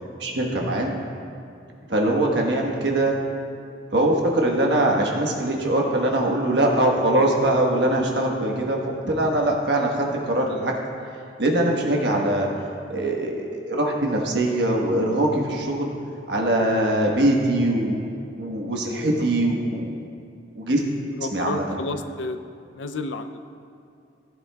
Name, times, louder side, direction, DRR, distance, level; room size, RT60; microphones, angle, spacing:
voice 1, 0.2-0.9 1.9-3.2 3.9-10.7 11.4-12.5 12.9-15.9 16.3-18.0 18.4-19.9 20.6-20.8 21.3-21.6, right 1 dB, 70° right, 0 dB, 1.3 m, -22 dB
voice 2, 21.1-22.4 22.7-23.4, left 2 dB, 85° left, 9 dB, 0.5 m, -30 dB
16.0 x 8.0 x 2.3 m, 2.5 s
head